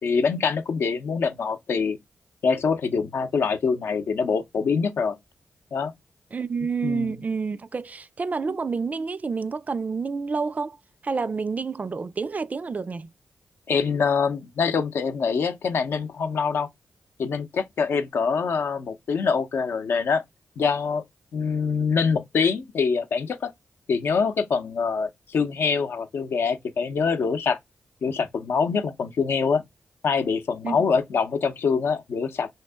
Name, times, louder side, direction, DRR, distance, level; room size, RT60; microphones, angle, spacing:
voice 1, 0.0-2.0 2.4-5.2 5.7-5.9 6.8-7.1 13.7-16.7 17.2-20.2 20.6-21.0 21.3-23.5 23.9-27.6 28.0-29.6 30.0-32.5, left 5 dB, 75° left, 0.6 m, -24 dB
voice 2, 6.3-10.8 11.0-13.1 30.6-30.8, right 4 dB, 40° right, 0.3 m, -29 dB
3.1 x 2.8 x 3.3 m
supercardioid pair, 45°, 4 cm